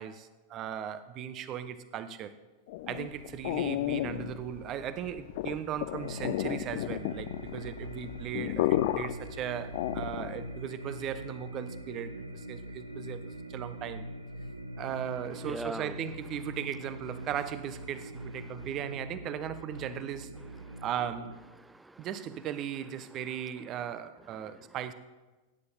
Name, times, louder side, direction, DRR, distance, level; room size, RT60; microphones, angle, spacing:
voice 1, 0.0-2.3 2.9-13.2 13.5-14.1 14.8-20.3 20.8-21.4 22.0-24.9, right 9 dB, 35° right, 13 dB, 0.9 m, -37 dB
sound 1, 2.7-10.5, left 15 dB, 50° left, 0.5 m, -33 dB
sound 2, 5.9-21.4, right 1 dB, 85° right, 0.8 m, -43 dB
voice 2, 14.8-16.0 17.2-17.3 18.2-18.7 19.7-19.8 20.4-20.9 21.6-22.1 23.0-23.4 23.7-23.9 24.2-24.8, right 2 dB, 5° right, 18 dB, 0.5 m, -45 dB
18.0 x 9.7 x 4.3 m, 1.2 s
figure-of-eight pair, 90°, 0 cm